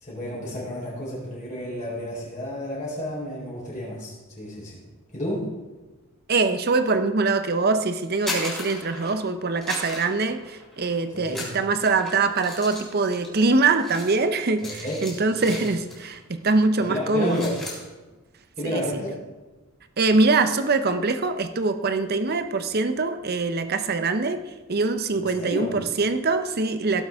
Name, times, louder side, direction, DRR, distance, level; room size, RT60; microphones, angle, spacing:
voice 1, 0.0-4.8 5.1-5.5 11.1-11.5 14.6-15.1 15.4-15.6 16.8-17.6 18.6-19.2 25.4-25.8, equal, 35° left, -7 dB, 3.9 m, -31 dB
voice 2, 6.3-17.5 18.6-18.9 20.0-27.0, right 3 dB, 45° right, 9 dB, 0.7 m, -23 dB
sound 1, 8.0-9.3 9.6-10.9 11.2-16.2 16.5-16.7 17.0-17.8, left 1 dB, 5° left, 3.6 m, -36 dB
17.0 x 7.9 x 3.6 m, 1.2 s
head